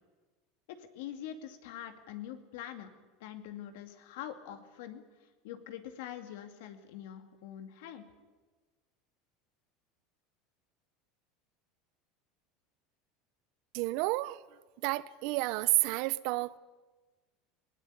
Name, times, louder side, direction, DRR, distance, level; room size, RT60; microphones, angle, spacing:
voice 1, 0.8-2.9 3.2-5.0 5.4-8.0, left 10 dB, 80° left, 2.4 m, -44 dB
voice 2, 13.7-14.4 14.8-16.6, right 21 dB, 65° right, 0.7 m, -30 dB
20.0 x 18.0 x 9.7 m
supercardioid pair, 130°, 0 cm